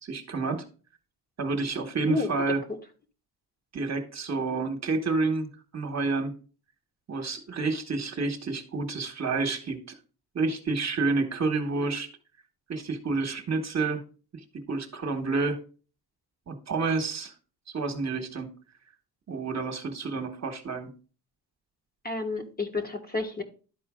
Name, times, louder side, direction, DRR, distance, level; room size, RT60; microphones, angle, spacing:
voice 1, 0.0-0.6 1.4-2.6 3.7-6.3 7.1-9.8 10.3-12.1 12.7-14.0 14.5-15.6 16.5-17.3 17.7-18.5 19.3-20.9, right 3 dB, 40° right, 1.4 m, -29 dB
voice 2, 2.1-2.5 22.0-23.4, left 3 dB, 25° left, 1.5 m, -30 dB
12.0 x 4.4 x 3.7 m
cardioid pair, 90°, 40 cm